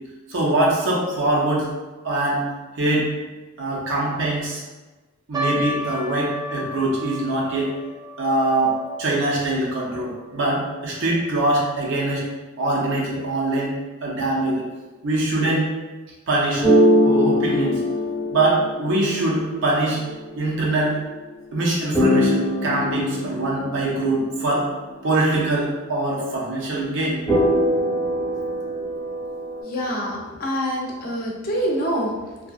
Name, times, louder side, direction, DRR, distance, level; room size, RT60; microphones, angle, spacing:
voice 1, 0.3-1.7 2.0-2.4 2.8-3.1 3.6-4.6 5.3-7.7 8.2-12.2 12.6-13.7 14.0-14.6 15.0-15.7 16.3-16.6 17.0-17.8 18.3-20.0 20.4-21.0 21.5-24.7 25.0-27.2, right 2 dB, 60° right, -3 dB, 0.6 m, -23 dB
sound 1, 5.3-11.8 12.1-12.2 13.0-13.2 13.8-13.9 14.3-14.5, right 1 dB, 20° right, 0.3 m, -34 dB
sound 2, 16.6-19.4 21.9-24.2 27.3-29.6, equal, 5° left, 0.9 m, -21 dB
voice 2, 29.6-32.5, equal, 45° left, -2 dB, 0.5 m, -26 dB
2.7 x 2.3 x 2.3 m, 1.2 s
head